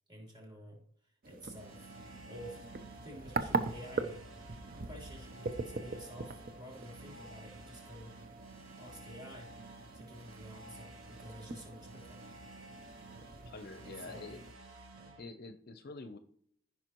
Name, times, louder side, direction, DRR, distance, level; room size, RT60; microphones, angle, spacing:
voice 1, 0.1-2.6 3.0-4.5 4.8-8.1 8.8-12.2 13.8-14.2 14.9-15.1, equal, 20° right, -3 dB, 3.4 m, -51 dB
sound 1, 1.2-14.5, right 3 dB, 40° right, 0.6 m, -42 dB
sound 2, 1.5-15.2, right 2 dB, 70° right, 1.4 m, -53 dB
voice 2, 13.5-14.4 15.2-16.2, left 3 dB, 45° left, 9 dB, 0.6 m, -47 dB
14.5 x 5.6 x 3.0 m, 0.65 s
head